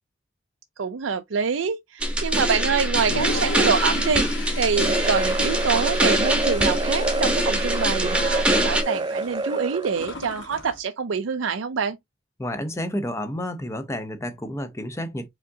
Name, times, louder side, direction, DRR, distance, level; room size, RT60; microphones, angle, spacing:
voice 1, 0.8-12.0, right 6 dB, 80° right, 0.5 m, -26 dB
sound 1, 2.0-8.8, right 1 dB, 5° right, 1.0 m, -24 dB
Toilet flush, 2.9-10.8, left 3 dB, 65° left, 1.4 m, -36 dB
sound 2, 4.8-10.2, right 2 dB, 25° right, 0.3 m, -28 dB
voice 2, 12.4-15.3, left 1 dB, 15° left, 0.6 m, -30 dB
4.9 x 3.6 x 2.7 m
head